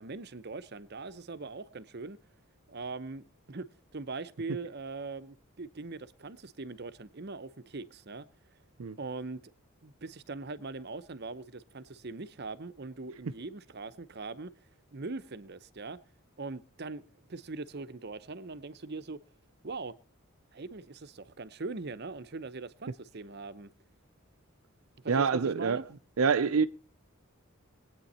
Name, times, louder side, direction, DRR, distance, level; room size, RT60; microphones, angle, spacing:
voice 1, 0.0-2.2 2.7-3.6 3.9-8.2 9.0-9.5 9.8-14.5 14.9-16.0 16.4-17.0 17.3-19.2 19.6-19.9 20.5-23.7 25.0-25.8, right 3 dB, 50° right, 0.8 m, -41 dB
voice 2, 25.1-25.8 26.2-26.7, right 5 dB, 75° right, 0.5 m, -26 dB
21.0 x 8.9 x 4.2 m
head